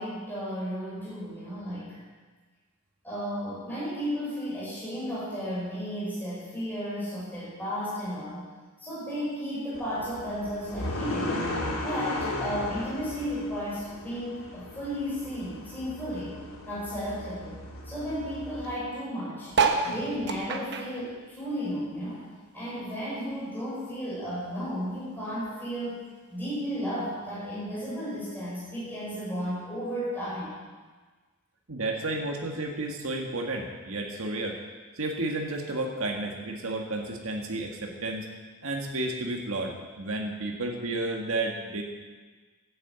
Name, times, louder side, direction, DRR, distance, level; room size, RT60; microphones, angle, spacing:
voice 1, 0.0-2.0 3.0-8.4 8.8-11.4 11.8-17.6 17.8-19.5 19.8-22.3 22.5-26.0 26.3-30.5, equal, 10° left, -10 dB, 5.3 m, -34 dB
sound 1, 9.7-18.7, left 1 dB, 85° left, 2.5 m, -36 dB
sound 2, 19.5-22.3 22.6-24.1 24.6-24.7 24.9-25.0 25.2-25.6 26.4-26.5, right 5 dB, 55° right, 1.1 m, -29 dB
voice 2, 31.7-34.6 35.0-38.3 38.6-41.8, right 2 dB, 70° right, 0 dB, 1.8 m, -32 dB
11.5 x 9.0 x 8.1 m, 1.4 s
head